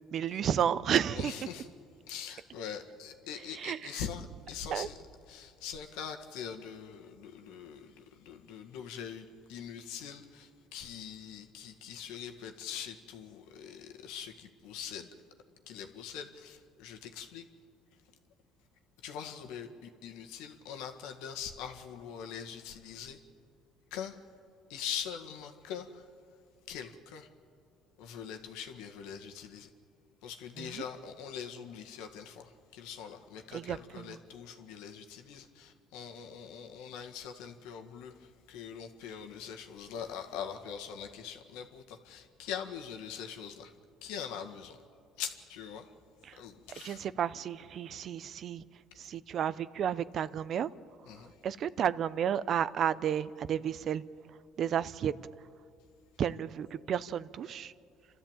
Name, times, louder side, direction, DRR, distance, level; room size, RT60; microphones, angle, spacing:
voice 1, 0.1-1.3 3.6-3.8 4.7-4.9 30.6-30.8 33.5-34.2 46.3-46.4 46.8-48.6 49.0-50.7 51.4-54.0 54.6-55.1 56.2-57.7, right 9 dB, 50° right, 16 dB, 0.7 m, -32 dB
voice 2, 1.1-1.7 2.1-5.0 5.3-15.1 15.7-17.4 19.0-23.2 23.9-24.2 24.7-26.1 26.7-27.3 28.0-29.7 30.2-43.7 44.0-44.8 45.2-45.9 46.4-47.1 49.0-49.1 51.1-51.4, left 8 dB, 80° left, 4 dB, 1.8 m, -43 dB
29.0 x 13.0 x 9.0 m, 2.3 s
supercardioid pair, 95°, 0 cm